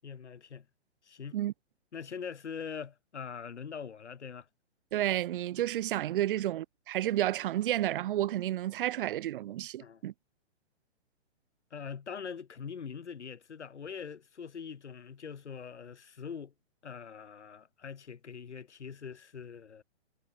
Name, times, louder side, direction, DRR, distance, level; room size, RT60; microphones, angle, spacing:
voice 1, 0.0-0.6 1.0-1.4 1.9-4.5 6.3-6.4 9.8-10.0 11.7-16.5 16.8-19.8, left 6 dB, 75° left, 6.4 m, -43 dB
voice 2, 4.9-10.1, right 13 dB, 50° right, 2.5 m, -31 dB
hypercardioid pair, 135°, 35 cm